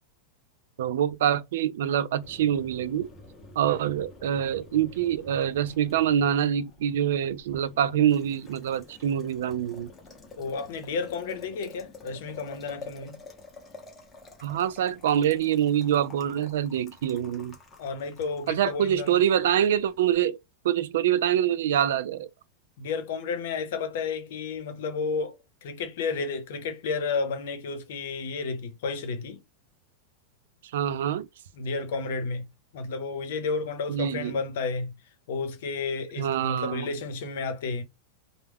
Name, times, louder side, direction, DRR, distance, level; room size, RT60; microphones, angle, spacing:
voice 1, 0.8-3.1 3.6-9.9 14.4-17.5 18.5-20.4 20.6-22.3 30.7-31.3 33.9-34.4 36.2-36.9, right 10 dB, 75° right, 0.3 m, -25 dB
Boiling, 2.2-20.1, left 3 dB, 15° left, 0.8 m, -49 dB
voice 2, 10.4-13.2 17.8-19.2 22.8-29.4 31.6-32.5 32.7-34.9 35.3-37.8, left 4 dB, 65° left, 0.7 m, -32 dB
2.2 x 2.1 x 3.4 m
supercardioid pair, 160°, 0 cm